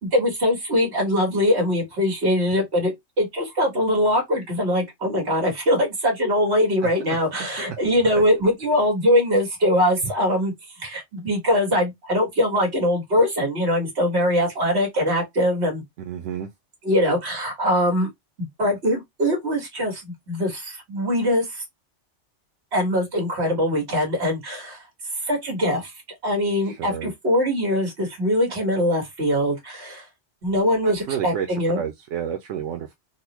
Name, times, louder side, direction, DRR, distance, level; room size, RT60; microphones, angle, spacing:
voice 1, 0.0-15.8 16.8-18.1 18.4-21.6 22.7-24.8 25.2-25.9 26.2-30.0 30.4-31.8, equal, 60° right, 1.8 m, -22 dB
voice 2, 6.8-7.2 16.0-16.5 26.6-27.1 30.8-32.9, right 9 dB, 85° right, 0.9 m, -31 dB
4.0 x 2.0 x 2.9 m
omnidirectional pair, 1.2 m